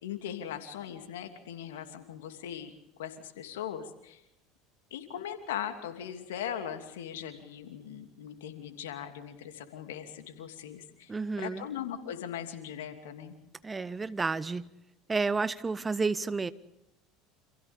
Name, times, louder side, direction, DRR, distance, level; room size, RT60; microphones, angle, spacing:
voice 1, 0.0-2.7 3.0-4.2 4.9-13.4, left 9 dB, 75° left, 6 dB, 2.7 m, -39 dB
voice 2, 11.1-11.6 13.6-14.6 15.1-16.5, right 4 dB, 20° right, 15 dB, 1.1 m, -30 dB
29.5 x 27.5 x 3.6 m, 0.84 s
hypercardioid pair, 75°, 0 cm